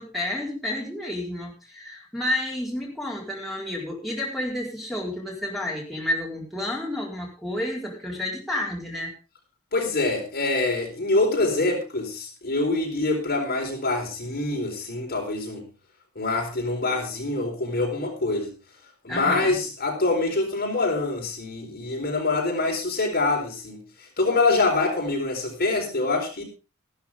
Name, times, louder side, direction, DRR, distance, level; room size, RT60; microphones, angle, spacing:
voice 1, 0.0-9.1 19.1-19.6, left 1 dB, ahead, -2 dB, 4.6 m, -30 dB
voice 2, 9.7-15.7 16.1-18.5 19.0-23.8 24.2-26.4, left 2 dB, 45° left, 0 dB, 4.5 m, -25 dB
14.5 x 13.0 x 3.7 m, 0.32 s
head